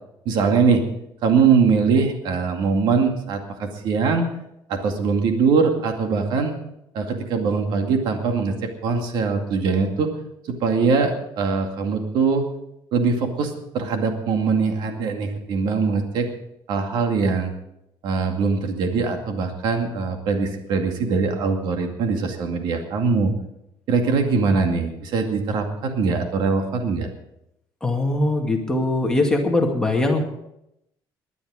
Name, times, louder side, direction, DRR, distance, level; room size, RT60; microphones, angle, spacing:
voice 1, 0.3-0.8 1.2-4.3 4.7-6.5 6.9-8.6 8.8-10.1 10.5-12.5 12.9-16.3 16.7-17.5 18.0-23.3 23.9-27.1, right 5 dB, 65° right, 4 dB, 2.2 m, -22 dB
voice 2, 27.8-30.2, left 2 dB, 10° left, 1 dB, 2.1 m, -21 dB
20.0 x 11.0 x 5.0 m, 0.82 s
cardioid pair, 155°, 8 cm